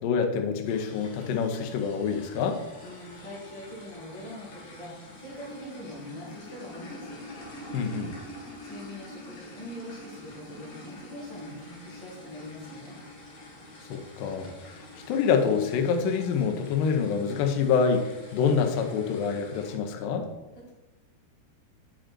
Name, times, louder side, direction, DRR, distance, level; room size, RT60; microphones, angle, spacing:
voice 1, 0.0-2.6 7.7-8.1 13.9-20.3, left 6 dB, 85° left, 4 dB, 2.0 m, -26 dB
sound 1, 0.6-19.7, left 1 dB, 50° left, 2.2 m, -46 dB
voice 2, 2.8-7.2 8.6-13.0 20.5-20.7, left 1 dB, 10° left, -7 dB, 1.8 m, -43 dB
8.8 x 5.2 x 4.4 m, 1.0 s
omnidirectional pair, 5.0 m